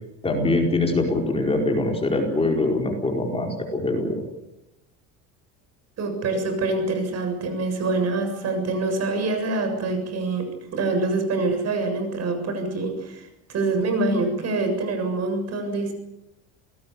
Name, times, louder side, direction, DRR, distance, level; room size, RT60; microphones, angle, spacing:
voice 1, 0.2-4.2, left 2 dB, 15° left, 1 dB, 4.7 m, -23 dB
voice 2, 6.0-15.9, right 3 dB, 45° right, 7 dB, 7.2 m, -25 dB
28.0 x 19.0 x 7.0 m, 0.88 s
supercardioid pair, 120°, 37 cm